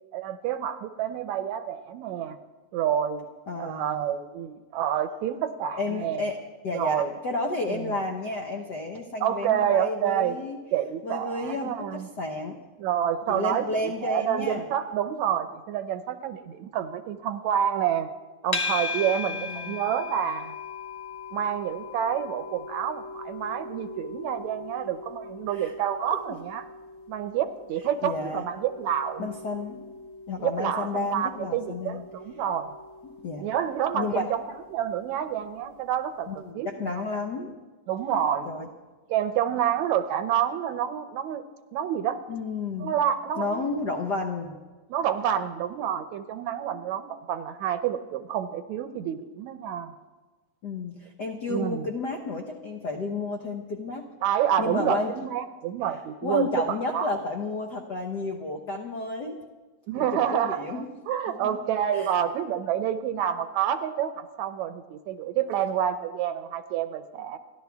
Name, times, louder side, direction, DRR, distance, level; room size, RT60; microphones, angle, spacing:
voice 1, 0.1-2.4 2.7-3.2 3.6-6.2 6.7-7.1 7.7-7.8 9.2-10.4 10.7-12.1 12.8-18.1 18.4-20.5 21.3-26.7 27.1-29.3 30.4-32.7 33.4-34.4 34.7-37.0 37.9-38.5 39.1-41.4 41.7-42.2 42.8-43.7 44.9-49.9 51.5-51.8 54.2-56.5 56.9-57.1 59.9-67.4, right 9 dB, 75° right, 10 dB, 1.9 m, -28 dB
voice 2, 3.5-4.1 5.8-6.4 6.6-10.6 11.0-12.6 13.3-14.6 19.3-19.8 25.5-25.7 26.1-26.2 28.0-28.4 29.2-29.8 30.3-32.0 33.0-33.5 33.9-34.3 36.3-37.5 38.4-38.7 42.3-42.9 43.4-44.6 50.6-54.1 54.6-55.1 56.2-59.4 59.9-60.9 61.3-61.6 61.9-62.1, left 3 dB, 80° left, 2 dB, 0.9 m, -31 dB
sound 1, 18.5-35.7, left 4 dB, 55° left, 0.7 m, -39 dB
30.0 x 11.5 x 3.5 m, 1.3 s
omnidirectional pair, 3.5 m